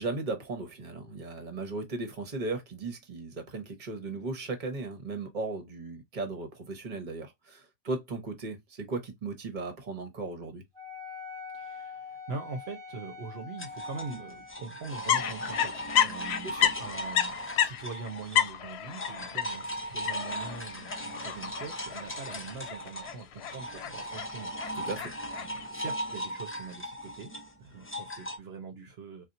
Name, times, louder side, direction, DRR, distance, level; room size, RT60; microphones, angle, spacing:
voice 1, 0.0-10.6 16.4-16.7 24.7-25.1, right 3 dB, 45° right, 1.1 m, -36 dB
Wind instrument woodwind instrument, 10.8-14.7, left 5 dB, 30° right, 0.7 m, -44 dB
voice 2, 11.5-16.5 16.8-24.5 25.4-27.3 27.6-29.3, right 4 dB, 70° right, 1.0 m, -42 dB
sound 1, 13.6-18.6 18.9-28.4, equal, 15° left, 0.5 m, -38 dB
sound 2, 15.0-25.7, left 10 dB, 75° left, 0.8 m, -31 dB
4.2 x 2.4 x 2.5 m
omnidirectional pair, 1.1 m